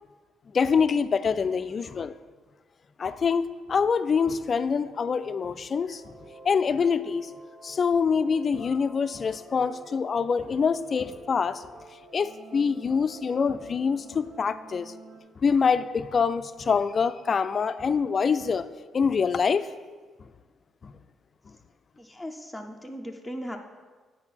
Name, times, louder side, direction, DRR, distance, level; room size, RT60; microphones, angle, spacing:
voice 1, 0.5-2.1 3.0-6.2 6.4-7.3 7.6-11.6 12.1-14.9 15.4-18.7 18.9-19.7 20.8-20.9, left 5 dB, 45° left, 13 dB, 0.4 m, -25 dB
sound 1, 5.7-15.2, right 2 dB, 85° right, 2.4 m, -49 dB
voice 2, 22.0-23.6, equal, 5° left, 1 dB, 0.6 m, -38 dB
8.7 x 4.4 x 5.7 m, 1.4 s
cardioid pair, 90°, 0 cm